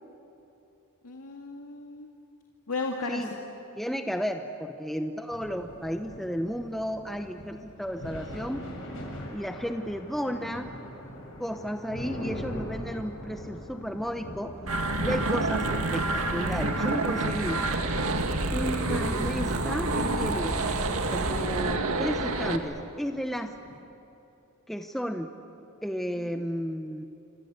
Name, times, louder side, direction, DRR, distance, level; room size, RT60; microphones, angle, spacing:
voice 1, 1.0-2.1 2.7-3.3 26.2-26.5, left 3 dB, 80° left, 1 dB, 2.1 m, -35 dB
voice 2, 3.8-8.7 9.3-10.7 11.4-14.6 15.0-17.6 18.5-20.6 21.1-23.6 24.7-25.3 25.8-27.1, equal, ahead, 5 dB, 0.8 m, -33 dB
sound 1, 5.3-23.8, equal, 60° left, 7.4 m, -43 dB
sound 2, 14.7-22.6, right 2 dB, 70° right, 2.0 m, -28 dB
27.5 x 26.5 x 8.2 m, 2.9 s
head